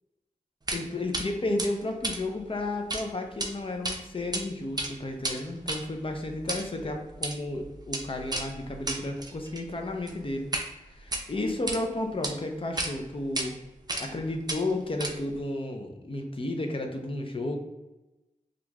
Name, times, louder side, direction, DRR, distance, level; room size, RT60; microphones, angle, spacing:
voice 1, 0.7-10.5 10.8-13.6 14.0-17.6, left 2 dB, 40° left, 3 dB, 0.6 m, -32 dB
sound 1, 0.7-0.8 1.1-1.3 1.6-3.0 3.3-3.5 3.8-4.4 4.7-10.7 11.0-11.8 12.2-12.3 12.8-12.9 13.4-13.5 13.9-14.2 14.5-15.4, right 2 dB, 30° right, 0.5 m, -33 dB
2.9 x 2.5 x 3.4 m, 1.0 s
wide cardioid pair, 55°, 14 cm